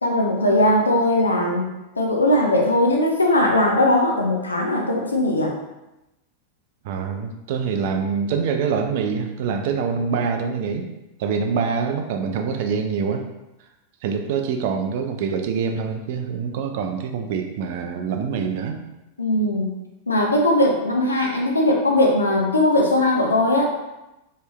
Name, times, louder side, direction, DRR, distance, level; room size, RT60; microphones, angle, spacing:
voice 1, 0.0-1.7 2.0-5.5 19.2-23.7, left 1 dB, 80° left, 0 dB, 0.4 m, -19 dB
voice 2, 6.8-10.9 11.2-13.2 14.0-18.8, right 6 dB, 50° right, 5 dB, 0.3 m, -25 dB
3.1 x 2.9 x 2.2 m, 0.96 s
figure-of-eight pair, 90°, 0 cm